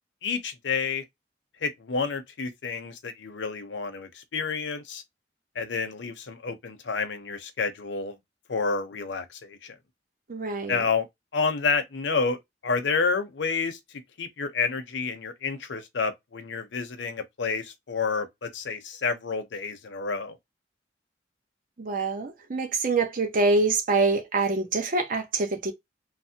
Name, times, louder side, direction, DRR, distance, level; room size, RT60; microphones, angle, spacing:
voice 1, 0.2-1.0 1.6-5.0 5.6-8.2 8.5-9.7 10.7-11.1 11.3-12.4 12.6-13.8 14.2-20.4, left 4 dB, 75° left, 0.6 m, -29 dB
voice 2, 10.3-10.8 21.8-25.7, right 3 dB, 45° right, 0.7 m, -25 dB
3.3 x 2.1 x 2.7 m
head